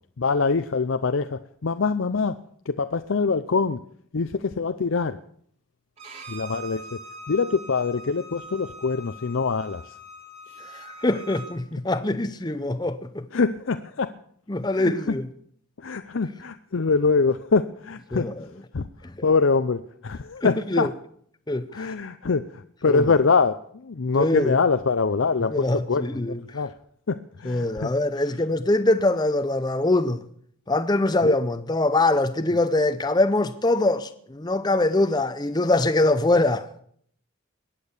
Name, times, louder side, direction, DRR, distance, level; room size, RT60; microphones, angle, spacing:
voice 1, 0.2-2.4 2.7-3.8 4.1-5.2 6.3-7.0 7.3-9.8 13.3-14.1 14.8-15.2 15.8-18.3 18.7-18.9 19.2-20.9 21.7-26.7 27.1-27.9 31.2-31.4, left 4 dB, 65° left, 0.6 m, -24 dB
Bowed string instrument, 6.0-11.5, right 1 dB, 30° right, 2.4 m, -42 dB
voice 2, 10.6-13.3 14.5-15.3 18.1-18.5 19.0-19.1 20.4-20.9 21.5-21.9 22.9-23.1 24.2-24.6 25.5-26.6 27.4-30.2 30.7-36.7, left 2 dB, 20° left, 0.7 m, -23 dB
21.5 x 8.6 x 7.1 m
head